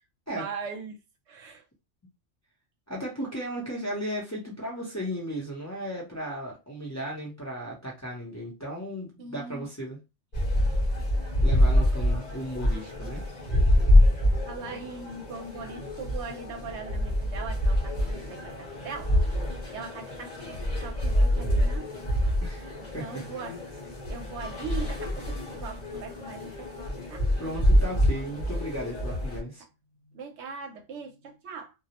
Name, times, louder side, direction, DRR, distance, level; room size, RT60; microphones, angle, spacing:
voice 1, 0.3-1.0 1.3-1.6 9.2-9.7 14.5-19.1 19.7-22.0 23.0-23.6 24.1-27.3 30.1-31.7, right 5 dB, 70° right, 0.8 m, -40 dB
voice 2, 2.9-10.0 11.4-13.2 22.4-23.3 27.4-29.6, equal, 20° left, 0.6 m, -35 dB
sound 1, 10.3-29.4, left 1 dB, 40° left, 0.9 m, -26 dB
2.3 x 2.0 x 2.8 m
omnidirectional pair, 1.2 m